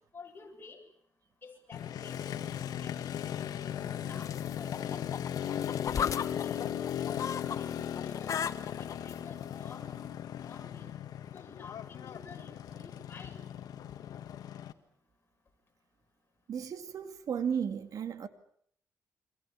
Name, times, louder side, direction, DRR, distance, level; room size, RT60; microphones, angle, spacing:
voice 1, 0.1-0.8 1.4-2.3 2.8-3.4 3.8-5.6 6.0-10.0 10.4-11.0 11.3-13.4, left 4 dB, 35° left, 7.3 m, -52 dB
Motorcycle, 1.7-14.7, left 10 dB, 80° left, 1.7 m, -37 dB
sound 1, 4.2-7.6 7.9-9.1 9.9-10.0, left 8 dB, 60° left, 1.6 m, -35 dB
voice 2, 16.5-18.3, right 7 dB, 65° right, 2.1 m, -34 dB
29.0 x 26.0 x 7.1 m
cardioid pair, 105°, 6 cm